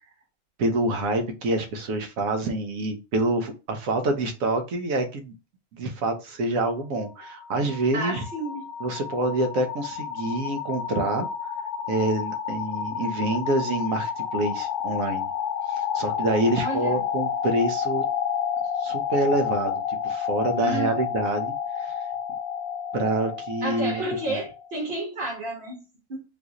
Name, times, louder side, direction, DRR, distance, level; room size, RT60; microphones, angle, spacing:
voice 1, 0.6-5.3 5.7-8.2 8.8-11.3 11.9-15.3 15.7-18.0 18.8-21.9 22.9-24.4, right 2 dB, 70° right, 1.2 m, -26 dB
sound 1, 6.8-24.7, left 8 dB, 80° left, 1.1 m, -30 dB
voice 2, 7.9-8.7 16.5-17.0 20.6-21.0 23.6-26.2, right 1 dB, 40° right, 1.6 m, -31 dB
4.0 x 2.5 x 2.9 m
omnidirectional pair, 1.5 m